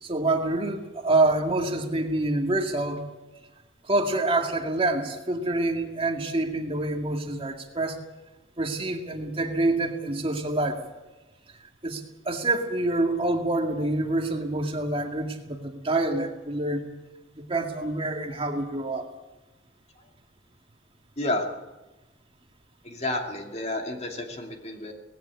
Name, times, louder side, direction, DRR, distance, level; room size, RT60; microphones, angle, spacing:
voice 1, 0.0-3.1 3.8-8.0 8.6-10.9 11.8-16.9 17.4-19.1, right 2 dB, 30° right, 3 dB, 2.1 m, -27 dB
voice 2, 21.2-21.5 22.8-24.9, left 1 dB, 35° left, 3 dB, 2.6 m, -30 dB
19.5 x 16.5 x 8.5 m, 1.1 s
head